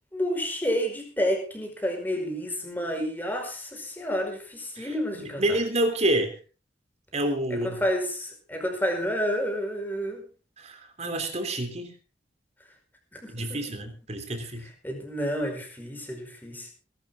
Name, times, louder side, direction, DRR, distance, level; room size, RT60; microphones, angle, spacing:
voice 1, 0.1-5.6 7.6-10.2 13.1-13.6 14.8-16.7, equal, 10° left, 3 dB, 5.0 m, -30 dB
voice 2, 4.8-6.4 7.1-7.8 10.6-11.9 13.3-14.7, right 1 dB, 40° right, 6 dB, 3.4 m, -28 dB
21.5 x 12.0 x 3.7 m, 0.34 s
head